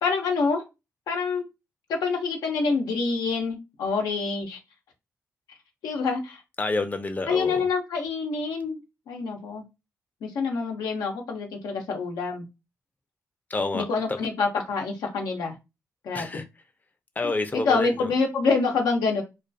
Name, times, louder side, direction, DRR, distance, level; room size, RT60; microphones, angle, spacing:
voice 1, 0.0-0.6 1.1-1.4 1.9-4.6 5.8-6.4 7.3-8.8 9.1-9.6 10.2-12.5 13.7-15.6 16.0-16.4 17.5-19.2, left 4 dB, 90° left, 2 dB, 0.6 m, -26 dB
voice 2, 6.6-7.6 13.5-14.2 16.1-16.4 17.2-18.1, left 2 dB, 25° left, 7 dB, 0.5 m, -28 dB
2.3 x 2.3 x 2.6 m, 0.24 s
cardioid pair, 55°, 6 cm